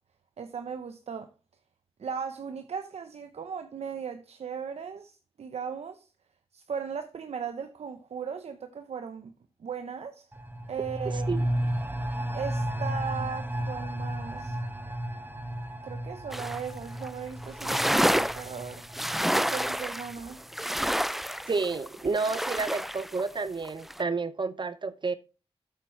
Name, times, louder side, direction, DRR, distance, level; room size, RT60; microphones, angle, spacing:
voice 1, 0.4-1.3 2.0-6.1 6.5-9.3 9.6-10.3 10.7-11.5 12.3-14.6 15.8-18.8 19.2-20.4, right 6 dB, 80° right, 0.8 m, -37 dB
sound 1, 10.3-19.7 20.1-20.2, right 1 dB, 20° right, 1.3 m, -33 dB
sound 2, 16.3-16.7 17.0-17.1 17.4-23.2 23.7-24.0, equal, ahead, 0.3 m, -29 dB
voice 2, 21.5-25.1, right 4 dB, 45° right, 0.6 m, -30 dB
8.6 x 8.2 x 3.1 m
cardioid pair, 60°, 11 cm